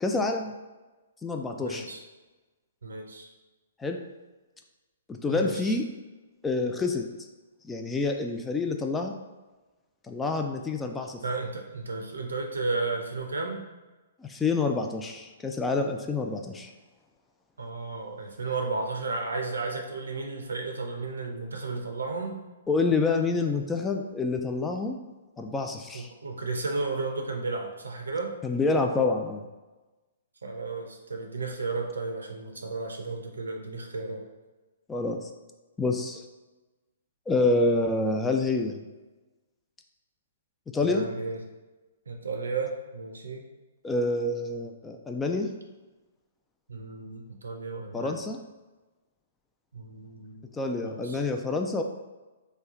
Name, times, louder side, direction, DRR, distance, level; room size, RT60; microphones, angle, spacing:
voice 1, 0.0-0.6 1.2-1.9 3.8-4.0 5.1-5.9 6.4-7.1 7.6-9.1 10.1-11.2 14.2-16.7 22.7-25.0 25.4-26.1 28.4-29.4 34.9-35.3 35.8-36.2 37.3-38.8 40.7-41.0 43.8-45.5 47.9-48.4 50.5-51.8, left 3 dB, 10° left, 3 dB, 0.3 m, -27 dB
voice 2, 1.6-2.0 2.8-3.3 5.3-5.7 11.2-13.6 17.6-22.4 25.9-28.3 30.4-34.2 40.8-41.4 42.1-43.5 46.7-48.2 49.7-50.5 50.7-51.2, right 3 dB, 85° right, 3 dB, 0.6 m, -33 dB
3.1 x 2.3 x 3.6 m, 1.2 s
hypercardioid pair, 130°, 0 cm